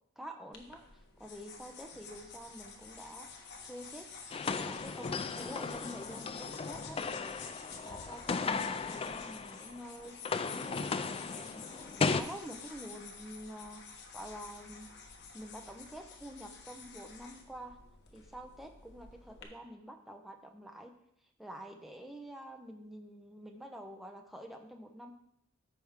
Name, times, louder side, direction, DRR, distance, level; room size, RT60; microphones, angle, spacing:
voice 1, 0.2-4.1 4.4-7.4 7.8-14.9 15.3-17.7 18.1-20.9 21.4-25.1, equal, ahead, 3 dB, 0.8 m, -48 dB
sound 1, 0.5-19.4, left 5 dB, 55° left, 1.2 m, -50 dB
sound 2, 4.3-9.8 10.1-12.2, left 4 dB, 30° left, 0.3 m, -36 dB
13.5 x 5.3 x 3.6 m, 0.75 s
head